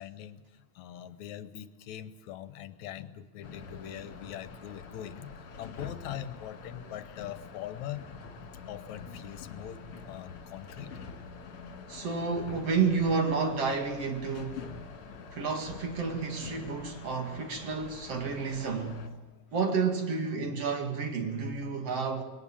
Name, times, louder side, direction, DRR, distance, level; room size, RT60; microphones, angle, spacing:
voice 1, 0.0-8.1 8.7-9.8 10.1-11.0, left 11 dB, 75° left, 2.1 m, -42 dB
sound 1, 3.4-19.1, left 4 dB, 55° left, 2.8 m, -46 dB
voice 2, 11.9-14.7 15.3-19.0 19.5-22.2, right 5 dB, 55° right, 3.0 m, -30 dB
21.0 x 18.5 x 8.7 m
omnidirectional pair, 3.4 m